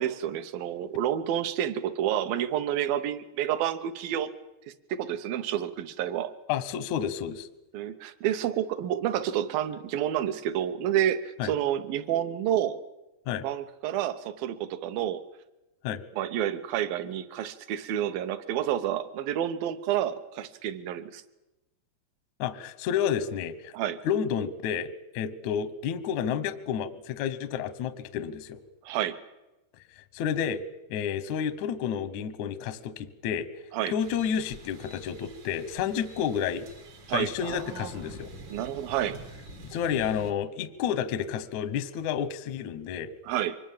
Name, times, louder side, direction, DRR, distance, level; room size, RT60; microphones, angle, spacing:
voice 1, 0.0-4.3 4.7-6.3 7.7-12.8 13.4-15.2 16.1-21.2 23.7-24.0 28.8-29.2 33.7-33.9 37.1-38.0 38.5-39.2 43.2-43.6, right 11 dB, 75° right, 13 dB, 2.3 m, -29 dB
voice 2, 6.5-7.5 11.4-11.5 13.3-13.4 15.8-16.0 22.4-23.7 24.0-24.9 25.1-28.6 30.1-30.6 30.9-33.5 33.9-36.6 37.1-38.3 39.7-43.1, left 8 dB, 75° left, 13 dB, 1.7 m, -30 dB
sound 1, 34.0-40.3, right 2 dB, 55° right, 1.2 m, -47 dB
24.0 x 20.5 x 7.3 m, 1.0 s
omnidirectional pair, 5.0 m